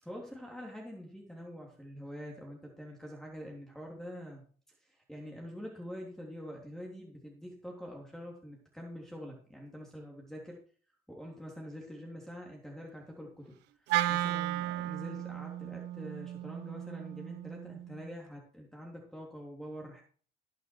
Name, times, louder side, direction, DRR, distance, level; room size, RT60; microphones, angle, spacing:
voice 1, 0.0-4.4 4.8-10.6 11.1-20.0, equal, 5° left, -1 dB, 3.3 m, -45 dB
Wind instrument woodwind instrument, 13.9-18.2, right 13 dB, 90° right, 0.8 m, -35 dB
17.0 x 6.5 x 4.6 m, 0.43 s
cardioid pair, 110°, 17 cm